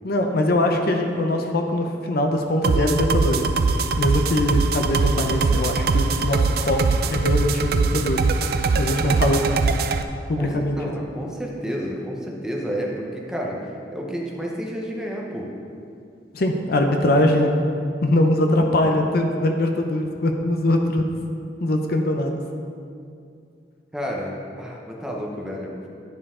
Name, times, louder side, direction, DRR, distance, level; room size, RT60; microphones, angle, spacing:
voice 1, 0.0-3.4 4.0-6.8 7.1-8.3 8.7-9.5 10.3-10.9 16.3-17.6 18.0-21.1 21.6-22.3, left 1 dB, 55° left, 4 dB, 0.6 m, -22 dB
sound 1, 2.6-10.0, right 4 dB, 60° right, 0.3 m, -22 dB
voice 2, 9.1-9.6 10.4-13.6 13.9-15.5 23.9-25.7, equal, 5° right, -2 dB, 0.8 m, -30 dB
10.5 x 4.8 x 3.7 m, 2.4 s
head